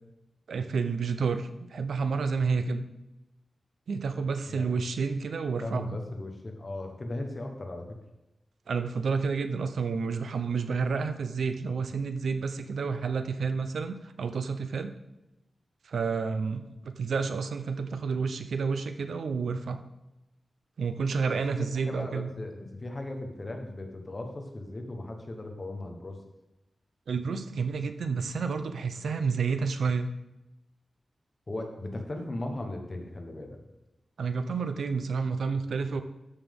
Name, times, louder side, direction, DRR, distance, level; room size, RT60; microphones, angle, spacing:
voice 1, 0.5-2.8 3.9-6.0 8.7-14.9 15.8-19.8 20.8-22.3 27.1-30.1 34.2-36.0, right 5 dB, 90° right, 9 dB, 0.6 m, -30 dB
voice 2, 5.6-8.0 21.6-26.2 31.5-33.7, left 1 dB, 25° left, 3 dB, 1.2 m, -37 dB
13.0 x 5.6 x 3.7 m, 0.94 s
wide cardioid pair, 170°, 0 cm